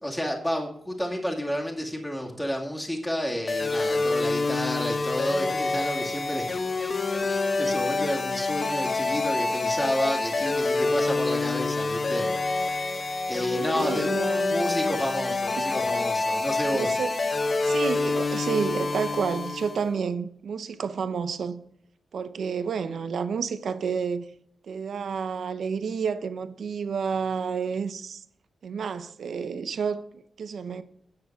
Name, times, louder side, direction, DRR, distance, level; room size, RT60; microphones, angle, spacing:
voice 1, 0.0-6.5 7.2-12.7 13.3-14.1 14.5-17.0, equal, 5° left, -2 dB, 2.1 m, -30 dB
sound 1, 3.5-19.9, left 3 dB, 35° left, 0.8 m, -27 dB
voice 2, 13.5-14.6 15.5-15.6 16.7-17.1 17.6-21.6 22.1-24.2 24.7-28.2 28.6-30.8, right 6 dB, 75° right, 11 dB, 0.7 m, -30 dB
9.6 x 6.8 x 6.1 m, 0.70 s
wide cardioid pair, 155°, 0 cm